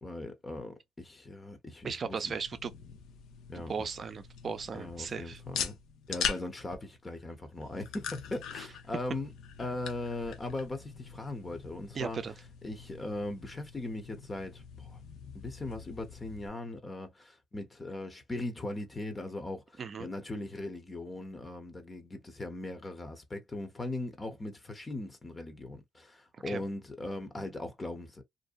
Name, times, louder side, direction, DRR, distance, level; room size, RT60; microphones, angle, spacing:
voice 1, 0.0-2.4 3.5-3.9 4.7-5.8 6.1-9.3 9.6-12.2 12.6-15.0 15.3-28.2, left 2 dB, 25° left, 0.8 m, -39 dB
voice 2, 1.8-2.7 3.5-5.4 11.9-12.3 19.8-20.1 26.5-26.6, right 5 dB, 45° right, 0.5 m, -36 dB
sound 1, 2.2-16.5, left 7 dB, 85° left, 0.6 m, -42 dB
2.7 x 2.1 x 2.5 m
cardioid pair, 90°, 0 cm